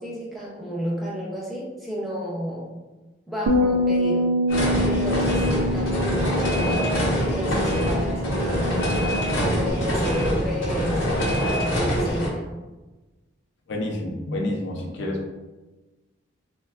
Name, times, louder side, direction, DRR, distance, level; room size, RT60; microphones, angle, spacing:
voice 1, 0.0-2.8 3.3-4.3 4.8-12.5, equal, ahead, -5 dB, 0.5 m, -31 dB
Bass guitar, 3.5-9.7, left 1 dB, 85° right, 0.3 m, -26 dB
sound 1, 4.5-12.3, equal, 80° left, 0.7 m, -24 dB
voice 2, 13.7-15.3, left 1 dB, 60° left, 1 dB, 0.4 m, -28 dB
3.1 x 2.2 x 2.3 m, 1.2 s
head